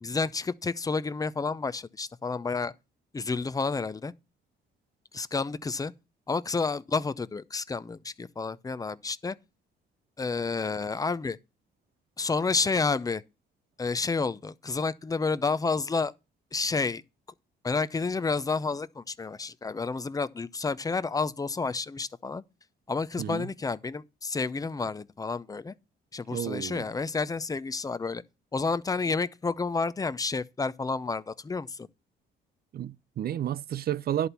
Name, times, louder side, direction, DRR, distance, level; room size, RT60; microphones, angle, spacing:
voice 1, 0.0-2.7 3.1-4.1 5.1-5.9 6.3-9.4 10.2-11.4 12.2-13.2 13.8-16.1 16.5-17.0 17.6-22.4 22.9-25.7 26.1-28.2 28.5-31.9, left 4 dB, 20° left, 0.5 m, -30 dB
voice 2, 23.2-23.5 26.3-26.8 32.7-34.3, right 11 dB, 50° right, 0.4 m, -31 dB
11.0 x 4.3 x 6.8 m
cardioid pair, 90°, 20 cm